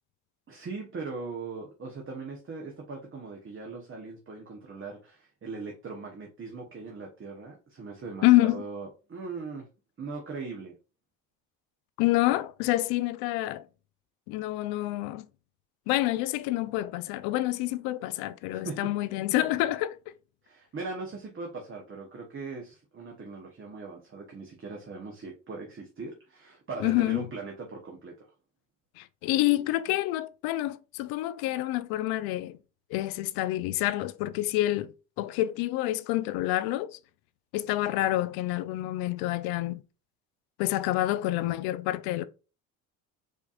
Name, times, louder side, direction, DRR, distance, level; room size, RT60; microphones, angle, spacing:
voice 1, 0.5-9.7 10.0-10.7 18.5-18.9 20.4-28.3, right 4 dB, 30° right, 1.1 m, -40 dB
voice 2, 8.2-8.6 12.0-13.7 14.3-15.3 15.9-20.0 26.8-27.2 29.0-32.6 32.9-34.9 35.2-37.0 37.5-39.8 40.6-42.2, left 16 dB, 70° left, 0.5 m, -27 dB
4.9 x 2.8 x 2.4 m
hypercardioid pair, 70°, 39 cm